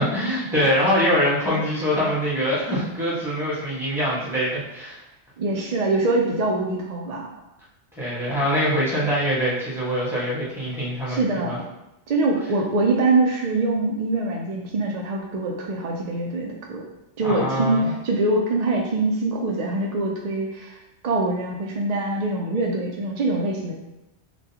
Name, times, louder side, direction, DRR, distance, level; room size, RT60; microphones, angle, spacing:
voice 1, 0.0-5.0 8.0-11.6 17.2-17.9, equal, ahead, -10 dB, 1.3 m, -24 dB
voice 2, 5.4-7.3 11.1-11.6 12.1-16.8 17.2-20.8 21.0-23.7, right 2 dB, 50° right, -1 dB, 0.5 m, -24 dB
6.0 x 2.2 x 2.8 m, 0.91 s
omnidirectional pair, 1.2 m